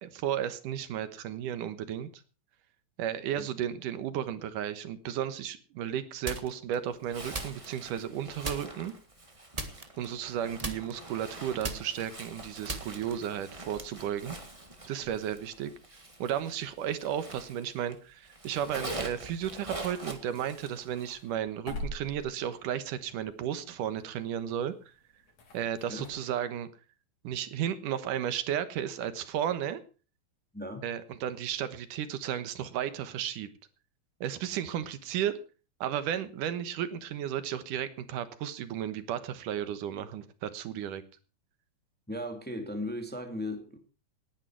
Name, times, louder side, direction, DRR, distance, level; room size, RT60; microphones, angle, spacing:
voice 1, 0.0-2.1 3.0-8.9 10.0-14.4 14.8-15.7 16.2-24.7 25.5-26.7 27.2-29.8 30.8-33.5 34.2-35.4 35.8-41.0, right 10 dB, 85° right, 2.8 m, -34 dB
sound 1, 6.2-6.7 7.3-8.1 8.4-8.9 9.5-10.3 10.6-13.4, right 2 dB, 30° right, 0.6 m, -38 dB
Zipper (clothing), 7.0-18.0 18.2-21.2, right 2 dB, 15° right, 1.4 m, -45 dB
sound 2, 19.8-26.1, left 1 dB, 60° left, 4.4 m, -46 dB
voice 2, 30.5-30.8 42.1-43.8, left 1 dB, 5° left, 1.8 m, -37 dB
19.0 x 10.5 x 4.6 m
omnidirectional pair, 3.6 m